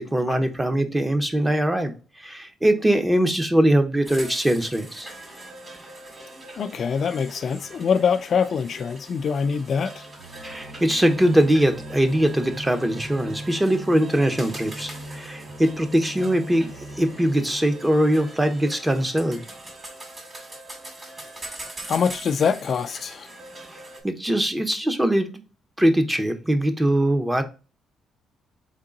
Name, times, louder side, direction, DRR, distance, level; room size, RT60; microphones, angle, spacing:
voice 1, 0.0-5.1 10.4-19.5 24.0-25.3 25.8-27.4, right 1 dB, 10° right, 0.7 m, -22 dB
sound 1, 4.0-24.0, right 2 dB, 35° right, 2.1 m, -42 dB
voice 2, 6.6-10.0 21.9-23.3, left 6 dB, 55° left, 0.4 m, -24 dB
sound 2, 8.2-18.8, right 1 dB, 75° right, 0.9 m, -41 dB
3.7 x 3.7 x 3.8 m
cardioid pair, 90°, 0 cm